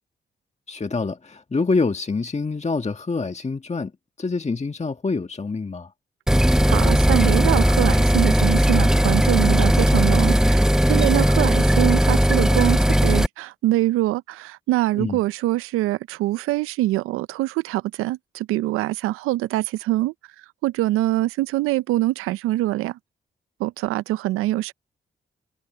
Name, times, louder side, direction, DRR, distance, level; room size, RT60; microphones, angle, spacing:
voice 1, 0.7-3.9 4.2-5.9 14.9-15.2, left 4 dB, 30° left, 1.6 m, -26 dB
sound 1, 6.3-13.3, equal, 5° right, 0.9 m, -17 dB
voice 2, 6.7-20.1 20.6-23.0 23.6-24.7, right 16 dB, 90° right, 0.5 m, -24 dB
supercardioid pair, 45°, 21 cm